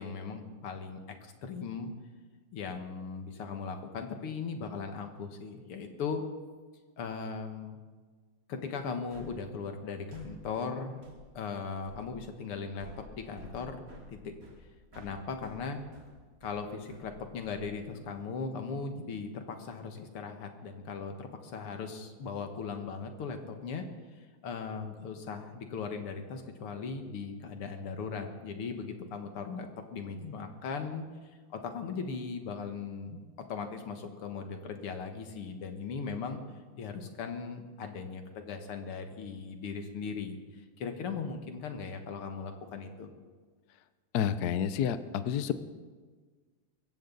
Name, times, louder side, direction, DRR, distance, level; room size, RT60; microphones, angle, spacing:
voice 1, 0.0-1.9 2.5-6.2 7.0-7.8 8.5-11.0 11.3-12.9 13.2-13.8 14.1-14.2 15.0-15.8 16.4-23.8 24.1-31.0 31.5-33.2 33.5-36.4 36.8-43.1, left 5 dB, 90° left, 6 dB, 2.4 m, -38 dB
sound 1, 9.1-18.2, equal, 40° right, 3.1 m, -53 dB
voice 2, 44.1-45.5, left 9 dB, 65° left, 12 dB, 1.0 m, -29 dB
23.5 x 14.0 x 4.0 m, 1.4 s
omnidirectional pair, 2.4 m